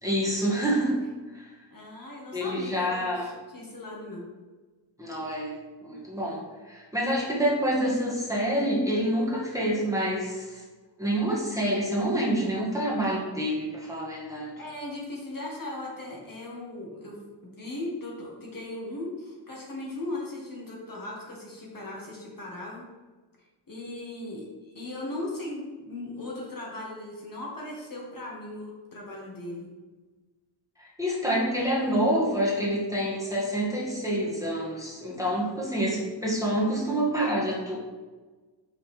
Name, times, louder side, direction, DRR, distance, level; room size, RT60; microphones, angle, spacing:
voice 1, 0.0-1.0 1.3-1.5 2.3-3.3 5.0-5.6 5.8-6.4 6.7-10.6 11.0-14.5 30.8-37.8, right 1 dB, 5° right, -5 dB, 1.7 m, -27 dB
voice 2, 1.7-4.3 14.6-22.8 23.7-29.7, left 2 dB, 50° left, -3 dB, 1.7 m, -38 dB
5.6 x 4.1 x 4.9 m, 1.3 s
wide cardioid pair, 95°, 44 cm